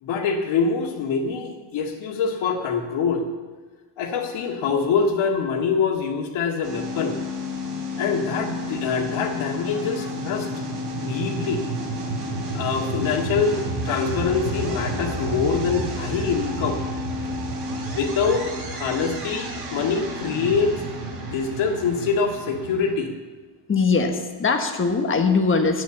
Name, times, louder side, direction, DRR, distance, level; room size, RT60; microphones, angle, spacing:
voice 1, 0.0-3.3 4.0-7.2 8.0-10.5 11.0-11.6 12.5-13.6 13.8-16.8 17.9-20.7 21.3-23.1, left 5 dB, 85° left, 1 dB, 2.0 m, -24 dB
sound 1, 6.6-23.0, equal, 60° right, 3.9 m, -30 dB
voice 2, 9.7-10.1 23.7-25.8, left 4 dB, 25° left, 4 dB, 1.4 m, -22 dB
9.8 x 9.3 x 8.5 m, 1.3 s
cardioid pair, 145°, 46 cm